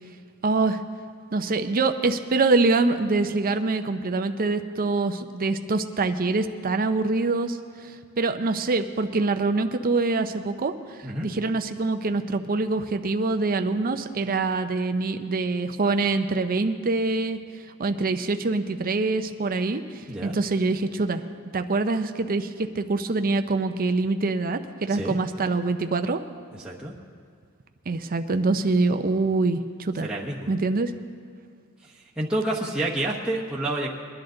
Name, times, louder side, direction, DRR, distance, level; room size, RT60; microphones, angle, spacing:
voice 1, 0.4-0.8 1.3-7.6 8.2-10.7 11.2-17.4 17.8-21.2 21.5-22.5 22.8-26.2 27.9-30.1 30.5-30.9, right 3 dB, 40° right, 8 dB, 0.6 m, -24 dB
voice 2, 26.5-26.9 30.0-30.5 31.8-31.9 32.2-33.9, right 1 dB, 5° right, -6 dB, 1.1 m, -29 dB
21.5 x 11.0 x 3.9 m, 2.2 s
head